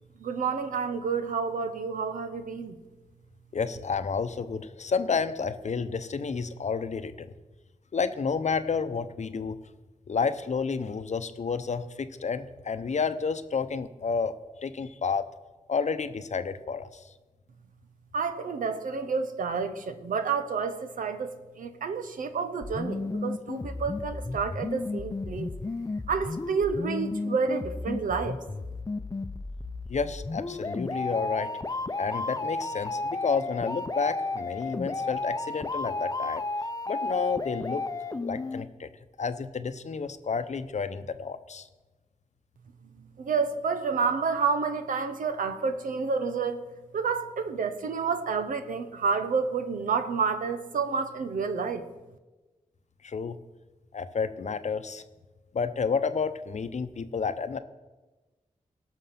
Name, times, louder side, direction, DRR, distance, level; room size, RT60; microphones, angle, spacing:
voice 1, 0.2-2.8 18.1-25.5 26.1-28.4 43.2-46.6 46.9-51.8, right 5 dB, 85° right, 8 dB, 0.9 m, -29 dB
voice 2, 3.5-7.3 7.9-9.6 10.1-14.3 14.6-15.2 15.7-16.9 29.9-31.5 32.0-36.4 36.9-37.8 38.2-38.9 39.2-41.7 53.0-53.4 53.9-55.0 55.5-57.6, left 5 dB, 60° left, 11 dB, 0.8 m, -30 dB
sound 1, 22.6-38.6, left 3 dB, 25° left, 0.6 m, -33 dB
18.0 x 6.2 x 5.9 m, 1.2 s
cardioid pair, 55°, 13 cm